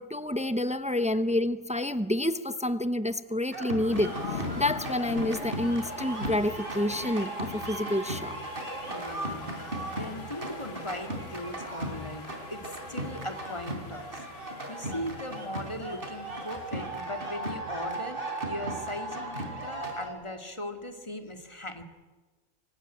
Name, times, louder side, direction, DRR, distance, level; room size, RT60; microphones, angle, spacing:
voice 1, 0.0-8.4, left 1 dB, 5° right, 0.6 m, -28 dB
sound 1, 3.5-20.1, right 2 dB, 45° right, 4.0 m, -37 dB
sound 2, 3.9-17.3, left 6 dB, 55° left, 1.3 m, -44 dB
voice 2, 8.9-9.6 9.9-14.2 14.7-21.8, left 1 dB, 20° left, 2.1 m, -39 dB
26.0 x 18.5 x 8.9 m
omnidirectional pair, 1.3 m